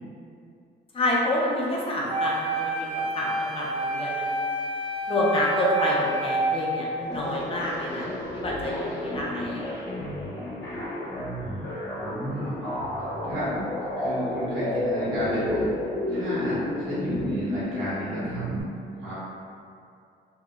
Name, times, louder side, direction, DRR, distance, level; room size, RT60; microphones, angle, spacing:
voice 1, 0.9-4.3 5.1-9.6, left 1 dB, 30° left, -4 dB, 0.5 m, -28 dB
Wind instrument woodwind instrument, 2.1-7.2, right 2 dB, 25° right, 0.4 m, -29 dB
sound 1, 7.0-18.6, left 1 dB, 60° left, 0.8 m, -31 dB
voice 2, 8.6-9.3 10.0-11.2 11.7-13.5 14.0-18.6 19.0-19.2, right 1 dB, 80° right, -10 dB, 1.2 m, -34 dB
2.8 x 2.0 x 2.3 m, 2.4 s
cardioid pair, 90°, 20 cm